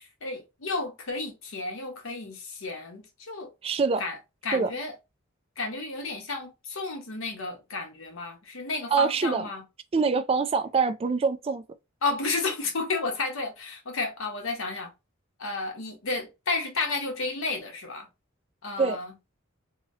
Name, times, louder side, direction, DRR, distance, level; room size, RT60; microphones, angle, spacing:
voice 1, 0.0-3.5 4.0-4.2 4.4-4.9 5.6-9.6 12.0-14.9 15.4-18.1 18.6-19.1, left 3 dB, 90° left, 1.0 m, -32 dB
voice 2, 3.6-4.0 4.5-4.7 8.9-9.5 9.9-11.6 18.8-19.0, right 5 dB, 30° right, 0.3 m, -24 dB
2.9 x 2.7 x 2.7 m
head